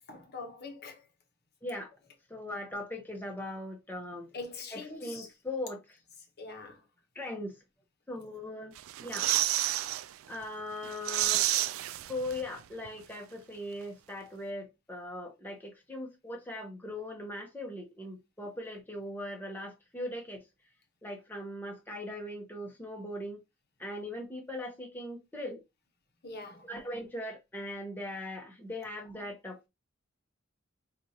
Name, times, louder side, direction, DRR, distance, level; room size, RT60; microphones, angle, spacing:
voice 1, 0.1-1.0 4.3-5.3 6.4-6.8 26.2-26.7, left 3 dB, 50° left, 0.9 m, -43 dB
voice 2, 2.3-4.3 4.7-5.8 7.1-7.5 8.1-8.7 9.0-9.3 10.3-11.5 12.1-20.4 21.0-23.4 23.8-25.6 26.6-29.7, left 1 dB, 10° left, 0.8 m, -39 dB
sound 1, 8.8-10.1 10.4-10.5 10.8-12.6 12.9-13.0, right 14 dB, 85° right, 0.3 m, -30 dB
4.5 x 2.5 x 2.7 m
head